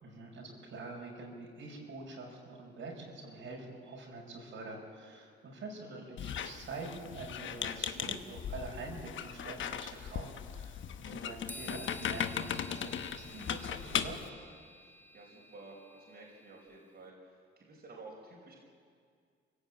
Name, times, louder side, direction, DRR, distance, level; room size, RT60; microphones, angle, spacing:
voice 1, 0.0-14.2, right 3 dB, 70° right, -2 dB, 6.0 m, -45 dB
Squeak, 6.2-14.3, left 8 dB, 65° left, 1.1 m, -38 dB
voice 2, 11.1-11.4 14.8-18.6, right 3 dB, 50° right, -2 dB, 5.1 m, -53 dB
sound 1, 11.5-16.8, left 2 dB, 10° left, 1.1 m, -51 dB
24.0 x 16.0 x 8.8 m, 2.1 s
cardioid pair, 80°, 21 cm